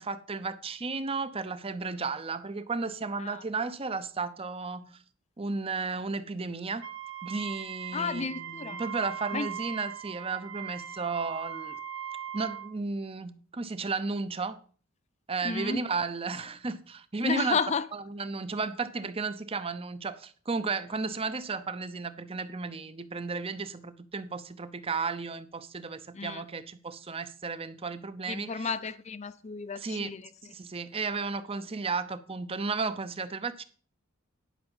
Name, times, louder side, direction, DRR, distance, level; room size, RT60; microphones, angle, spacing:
voice 1, 0.0-5.0 5.4-6.9 7.2-11.8 12.3-14.6 15.3-17.6 17.9-28.7 29.7-30.1 30.5-33.6, right 4 dB, 25° right, 0.7 m, -34 dB
Wind instrument woodwind instrument, 6.8-12.7, right 8 dB, 75° right, 1.2 m, -39 dB
voice 2, 7.9-8.8 9.3-9.5 15.4-15.8 17.2-17.8 26.1-26.4 28.3-30.2, left 5 dB, 30° left, 0.5 m, -32 dB
11.0 x 5.8 x 5.5 m
head